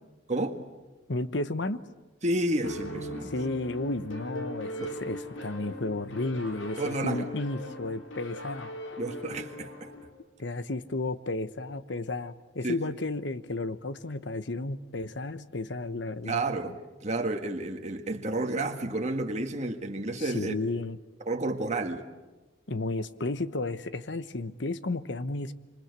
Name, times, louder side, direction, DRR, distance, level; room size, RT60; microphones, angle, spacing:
voice 1, 0.3-0.6 2.2-3.3 4.8-5.0 6.8-7.2 9.0-9.9 12.6-12.7 16.2-20.5 21.3-22.0, right 2 dB, 35° right, 1.7 m, -31 dB
voice 2, 1.1-1.8 3.3-8.7 10.4-16.4 20.2-21.0 22.7-25.5, left 2 dB, 60° left, 1.0 m, -33 dB
sound 1, 2.6-10.1, equal, 80° left, 3.9 m, -39 dB
26.5 x 26.0 x 8.3 m
head